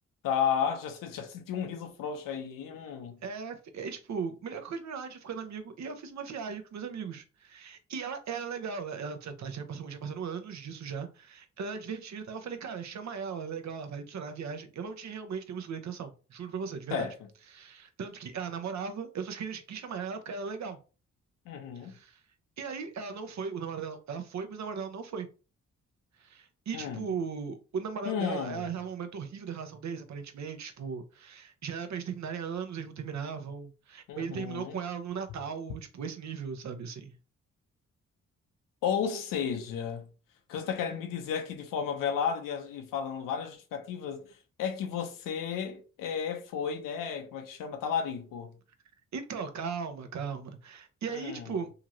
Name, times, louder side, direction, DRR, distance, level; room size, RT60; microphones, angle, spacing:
voice 1, 0.2-3.2 16.9-17.1 21.5-21.9 26.7-27.1 28.0-28.7 34.1-34.8 38.8-40.1 40.5-44.3 44.6-48.5 51.1-51.6, left 7 dB, 85° left, 0.7 m, -33 dB
voice 2, 3.2-17.1 17.5-20.8 21.8-22.2 22.6-25.3 26.2-37.1 49.1-51.7, right 6 dB, 60° right, 0.7 m, -37 dB
2.8 x 2.5 x 2.9 m
supercardioid pair, 50°, 32 cm